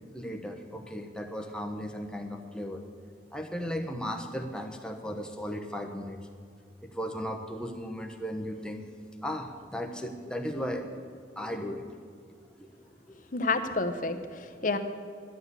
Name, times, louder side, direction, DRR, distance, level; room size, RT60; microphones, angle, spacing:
voice 1, 0.1-2.8 3.3-6.3 6.8-8.9 9.2-10.9 11.4-11.9 12.6-12.7 13.1-13.2 14.1-14.7, equal, 5° left, 3 dB, 1.0 m, -36 dB
voice 2, 13.3-14.8, left 3 dB, 45° left, 8 dB, 0.9 m, -29 dB
11.5 x 9.3 x 8.3 m, 2.3 s
head